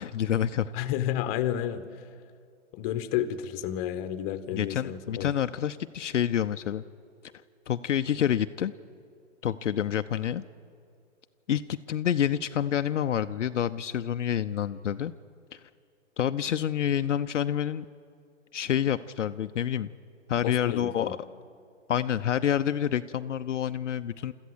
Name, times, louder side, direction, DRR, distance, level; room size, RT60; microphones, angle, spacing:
voice 1, 0.0-0.9 4.5-6.8 7.7-8.7 9.4-10.4 11.5-15.1 15.5-15.6 16.2-17.9 18.5-19.9 20.3-21.2 21.9-24.3, left 9 dB, 75° left, 9 dB, 0.7 m, -28 dB
voice 2, 0.7-1.9 2.7-5.3 20.4-21.2, left 11 dB, 30° left, 11 dB, 1.2 m, -31 dB
29.0 x 14.0 x 8.0 m, 2.4 s
hypercardioid pair, 130°, 37 cm